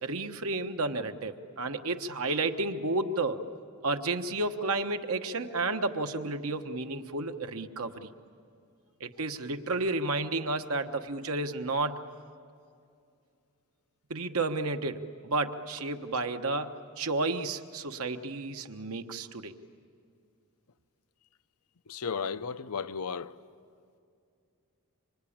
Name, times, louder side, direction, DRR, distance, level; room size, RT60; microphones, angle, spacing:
voice 1, 0.0-3.4 3.8-8.1 9.0-12.0 14.1-19.5, right 2 dB, 75° right, 1.2 m, -31 dB
voice 2, 21.9-23.3, left 6 dB, 90° left, 0.7 m, -34 dB
26.0 x 25.5 x 8.7 m
head